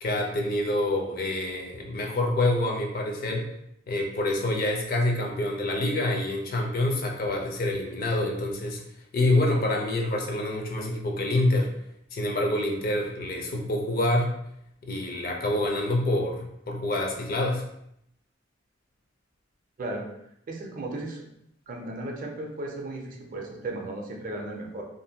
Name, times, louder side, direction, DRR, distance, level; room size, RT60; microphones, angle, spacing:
voice 1, 0.0-3.5 3.9-8.8 9.1-11.7 12.1-14.3 14.8-17.6, left 1 dB, 50° left, 1 dB, 0.5 m, -26 dB
voice 2, 20.5-21.2 21.7-24.8, right 2 dB, 45° right, 0 dB, 0.5 m, -35 dB
2.5 x 2.1 x 2.7 m, 0.76 s
head